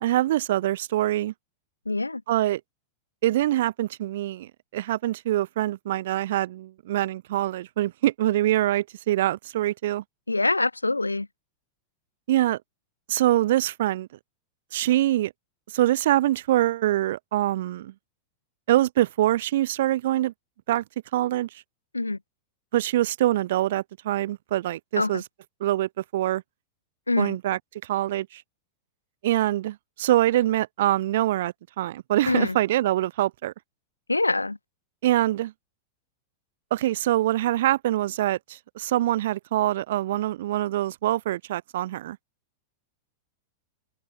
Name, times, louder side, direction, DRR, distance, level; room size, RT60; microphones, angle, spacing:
voice 1, 0.0-1.3 2.3-2.6 3.2-10.0 12.3-12.6 13.1-14.1 14.7-15.3 15.7-17.9 18.7-20.3 20.7-20.8 21.1-21.5 22.7-25.2 25.6-26.4 27.2-28.4 29.2-33.5 35.0-35.5 36.7-42.2, right 14 dB, 55° right, 1.0 m, -24 dB
voice 2, 1.9-2.2 10.3-11.3 21.9-22.2 25.0-25.2 27.1-27.4 32.3-32.6 34.1-34.6, left 2 dB, 85° left, 0.7 m, -24 dB
open air
figure-of-eight pair, 95°, 0 cm